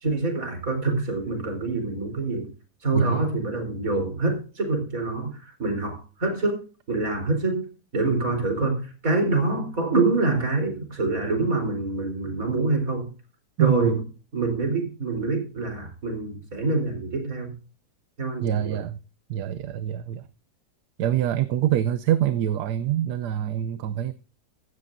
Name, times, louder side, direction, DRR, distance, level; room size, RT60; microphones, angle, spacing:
voice 1, 0.0-2.5 2.8-6.6 6.9-7.7 7.9-13.1 13.6-14.0 14.3-17.5 18.2-18.8, right 3 dB, 50° right, 4.5 m, -26 dB
voice 2, 2.9-3.3 13.6-14.0 18.4-19.0 19.3-20.3 21.0-24.1, right 11 dB, 75° right, 1.2 m, -25 dB
15.5 x 13.0 x 2.6 m
omnidirectional pair, 1.8 m